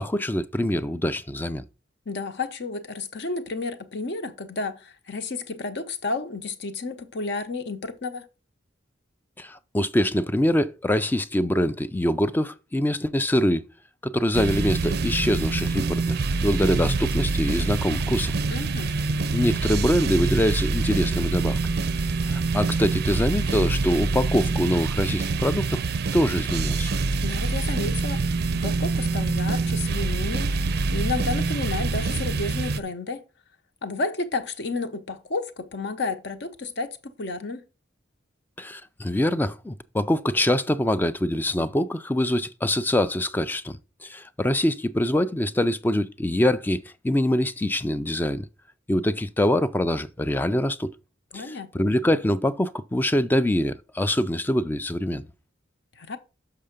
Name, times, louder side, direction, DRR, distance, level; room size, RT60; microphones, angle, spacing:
voice 1, 0.0-1.6 9.4-13.7 14.0-18.3 19.3-21.6 22.2-25.8 26.1-26.9 38.6-48.5 48.9-50.9 51.3-55.3, left 1 dB, 10° left, 0.3 m, -24 dB
voice 2, 2.1-8.3 18.5-18.9 27.2-28.3 28.5-30.5 30.9-33.2 33.8-37.6 51.3-51.8 56.0-56.2, left 3 dB, 60° left, 0.8 m, -31 dB
sound 1, 14.3-32.8, right 3 dB, 55° right, 0.5 m, -25 dB
6.7 x 5.5 x 5.1 m
head